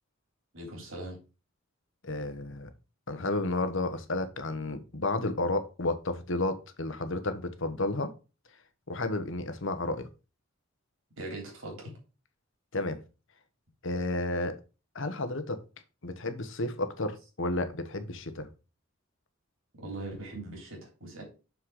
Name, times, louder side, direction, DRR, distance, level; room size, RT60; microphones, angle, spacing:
voice 1, 0.5-1.2 11.2-11.9 19.8-21.2, right 2 dB, 70° right, 3.7 m, -40 dB
voice 2, 2.0-2.7 3.1-8.1 8.9-10.1 12.7-13.0 13.8-14.5 14.9-15.6 16.0-18.5, left 2 dB, 65° left, 1.3 m, -32 dB
6.7 x 6.3 x 4.9 m
head